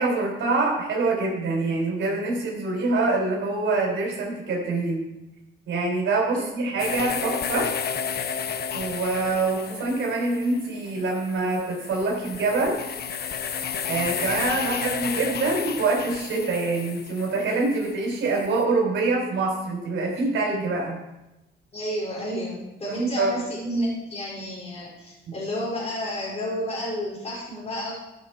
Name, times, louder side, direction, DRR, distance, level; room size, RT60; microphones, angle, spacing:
voice 1, 0.0-5.0 5.7-7.7 8.7-12.8 13.9-21.0 22.9-23.3, right 3 dB, 75° right, -2 dB, 3.8 m, -25 dB
voice 2, 6.3-6.7 9.7-9.8 21.7-27.9, equal, 30° left, -5 dB, 3.9 m, -30 dB
sound 1, 6.8-18.6, left 7 dB, 55° left, 0.9 m, -32 dB
13.5 x 6.9 x 4.4 m, 0.96 s
cardioid pair, 90°, 20 cm